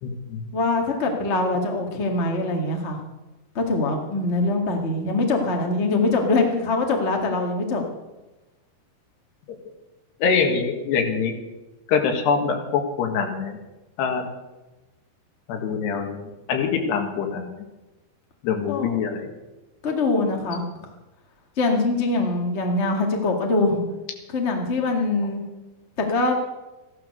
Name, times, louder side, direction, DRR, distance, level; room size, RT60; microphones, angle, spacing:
voice 1, 0.0-0.5 10.2-11.3 11.9-13.6 14.0-14.3 15.5-17.5 18.4-19.3, left 6 dB, 80° left, 4 dB, 3.7 m, -24 dB
voice 2, 0.5-3.0 3.5-7.8 18.7-19.2 19.8-20.6 21.6-23.8 24.3-25.4 26.0-26.3, left 2 dB, 35° left, 2 dB, 1.1 m, -23 dB
14.5 x 11.5 x 6.7 m, 1.1 s
omnidirectional pair, 4.8 m